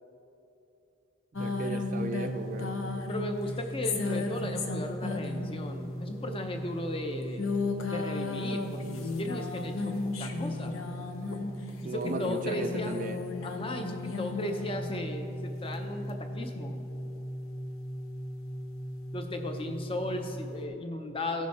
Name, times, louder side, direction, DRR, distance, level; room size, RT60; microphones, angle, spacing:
sound 1, 1.3-20.6, left 2 dB, 75° left, 0.9 m, -35 dB
voice 1, 1.4-2.8 11.8-13.2, right 3 dB, 40° right, 7 dB, 0.3 m, -36 dB
voice 2, 3.1-7.5 7.9-10.7 11.8-13.0 13.4-16.8 19.1-21.5, left 1 dB, 25° left, 5 dB, 0.7 m, -36 dB
15.5 x 6.1 x 4.2 m, 2.8 s
head